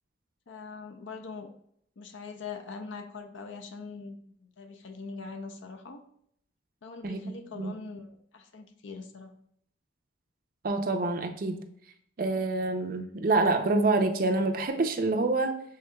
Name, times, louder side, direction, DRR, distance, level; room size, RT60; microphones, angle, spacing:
voice 1, 0.5-1.5 2.0-6.0 6.8-9.3, left 4 dB, 75° left, 7 dB, 0.5 m, -42 dB
voice 2, 7.0-7.8 10.6-11.6 12.2-15.6, right 3 dB, 45° right, 6 dB, 0.5 m, -27 dB
6.5 x 3.6 x 2.2 m, 0.68 s
head